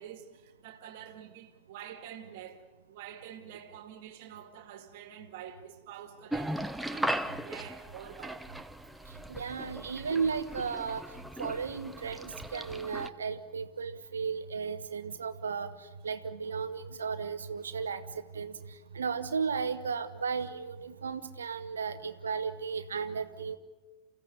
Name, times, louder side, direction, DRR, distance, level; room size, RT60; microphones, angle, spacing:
voice 1, 0.0-8.5, right 9 dB, 50° right, 2.1 m, -47 dB
sound 1, 6.3-13.1, right 1 dB, 5° right, 0.8 m, -38 dB
voice 2, 9.3-11.0 11.4-18.5 18.9-23.6, right 5 dB, 70° right, 1.0 m, -35 dB
29.0 x 15.5 x 8.2 m
figure-of-eight pair, 90°, 0 cm